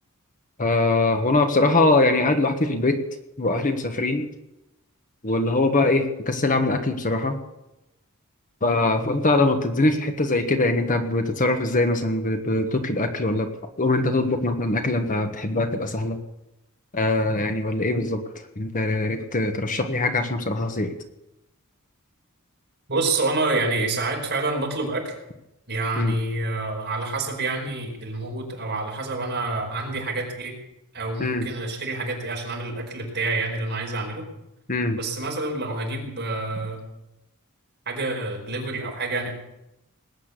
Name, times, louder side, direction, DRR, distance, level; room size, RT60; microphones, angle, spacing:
voice 1, 0.6-3.0 3.4-4.3 5.2-7.4 8.6-13.5 13.8-16.2 16.9-18.2 18.6-20.9 26.0-26.1 31.2-31.5 34.7-35.0, left 2 dB, 40° left, 6 dB, 1.4 m, -22 dB
voice 2, 22.9-25.1 25.7-30.5 30.9-34.3 35.0-36.8 37.9-39.3, right 3 dB, 50° right, 0 dB, 5.0 m, -27 dB
20.0 x 8.6 x 8.3 m, 0.92 s
head